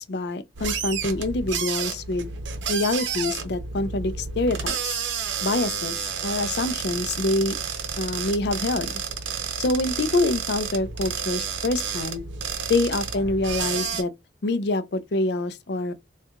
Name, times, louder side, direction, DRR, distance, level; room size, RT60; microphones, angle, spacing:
voice 1, 0.0-2.3 2.7-5.0 5.4-7.5 8.0-9.0 9.6-12.2 12.7-14.1 14.4-15.9, left 2 dB, 60° left, 0.5 m, -26 dB
sound 1, 0.6-14.0, right 6 dB, 80° right, 0.8 m, -30 dB
4.4 x 2.4 x 2.3 m
head